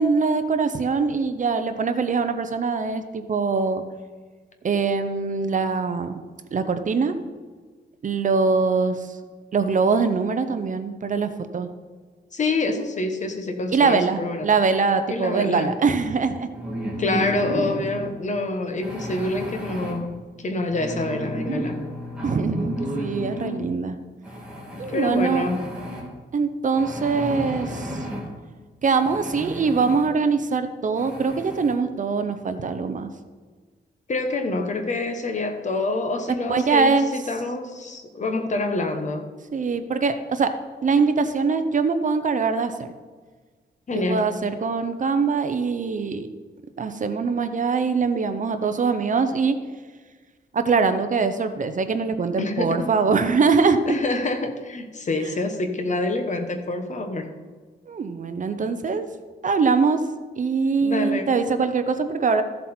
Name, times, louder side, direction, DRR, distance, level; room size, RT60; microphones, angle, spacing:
voice 1, 0.0-3.8 4.6-6.2 6.5-7.1 8.0-9.1 9.5-11.7 13.7-16.5 22.2-22.7 23.0-24.0 24.8-25.5 26.3-28.0 28.8-33.1 36.5-37.1 39.5-40.5 40.8-42.9 43.9-46.3 46.8-49.6 50.5-53.8 57.9-59.1 59.4-60.0 60.4-62.4, right 5 dB, 45° right, 9 dB, 0.7 m, -23 dB
voice 2, 12.3-14.5 15.1-15.8 17.0-21.8 24.7-25.7 34.1-39.3 43.9-44.4 52.4-52.9 53.9-57.3 60.8-61.3, left 2 dB, 40° left, 6 dB, 1.1 m, -27 dB
sound 1, 16.5-18.1 18.8-19.9 20.7-23.5 24.2-26.0 26.7-28.2 28.9-30.1 30.5-30.6 30.9-31.7, equal, 5° right, 2.6 m, -32 dB
14.0 x 7.7 x 4.4 m, 1.4 s
wide cardioid pair, 180°, 19 cm